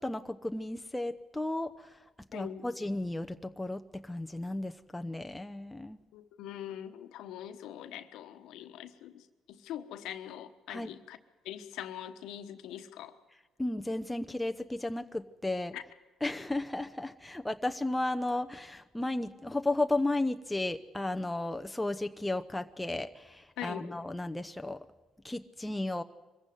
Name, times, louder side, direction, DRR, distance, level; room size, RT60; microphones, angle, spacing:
voice 1, 0.0-2.0 2.3-6.0 10.7-10.9 13.6-15.7 16.2-24.8 25.2-26.0, left 2 dB, 10° left, 7 dB, 0.9 m, -34 dB
voice 2, 2.3-2.6 6.1-9.2 9.5-11.2 11.4-13.1 15.7-15.8 23.6-23.9, left 11 dB, 75° left, 9 dB, 1.2 m, -42 dB
23.5 x 15.0 x 9.3 m, 1.2 s
supercardioid pair, 65°, 0 cm